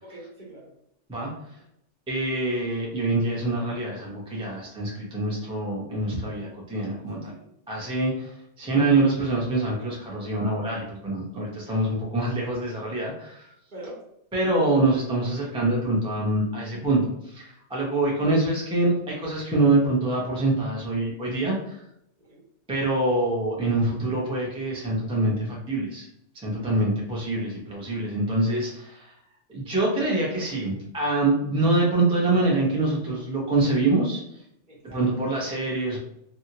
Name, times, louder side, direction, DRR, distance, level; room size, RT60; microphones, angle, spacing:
voice 1, 0.0-0.7 7.1-7.5 13.7-14.0 22.2-22.4 34.7-35.1, right 1 dB, 45° right, -4 dB, 0.9 m, -43 dB
voice 2, 1.1-1.6 2.1-7.3 7.7-13.5 14.3-21.8 22.7-26.1 26.3-29.1 29.5-34.4 34.8-36.0, right 2 dB, 5° right, -4 dB, 0.5 m, -25 dB
2.8 x 2.4 x 2.8 m, 0.76 s
omnidirectional pair, 1.3 m